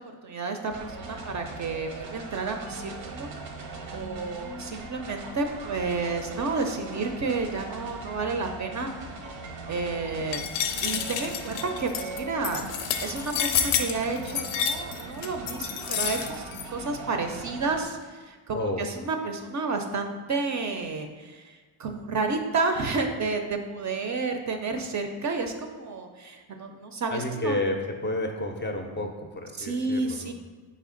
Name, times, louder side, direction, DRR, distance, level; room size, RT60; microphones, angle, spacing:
voice 1, 0.0-3.3 3.9-8.9 9.7-10.5 10.8-12.6 13.0-27.6 29.6-30.3, right 3 dB, 40° right, 5 dB, 0.5 m, -31 dB
sound 1, 0.7-17.8, right 3 dB, 85° right, 0.8 m, -40 dB
sound 2, 10.3-16.6, left 8 dB, 90° left, 0.5 m, -29 dB
voice 2, 18.5-18.9 27.1-30.3, left 1 dB, 25° left, 3 dB, 0.4 m, -30 dB
4.2 x 3.3 x 3.8 m, 1.4 s
cardioid pair, 85°, 47 cm